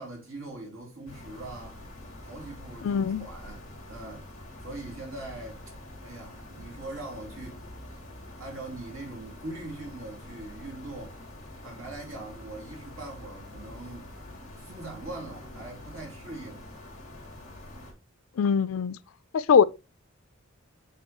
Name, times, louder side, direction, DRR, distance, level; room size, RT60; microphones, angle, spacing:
voice 1, 0.0-1.8 2.2-4.3 4.6-5.6 6.0-7.7 8.4-11.2 11.6-14.1 14.5-16.7, right 2 dB, 80° right, 3.0 m, -41 dB
sound 1, 1.1-17.9, left 1 dB, 35° left, 2.5 m, -45 dB
voice 2, 2.8-3.3 18.4-19.0 19.3-19.6, left 6 dB, 85° left, 0.4 m, -22 dB
8.2 x 4.4 x 2.9 m
head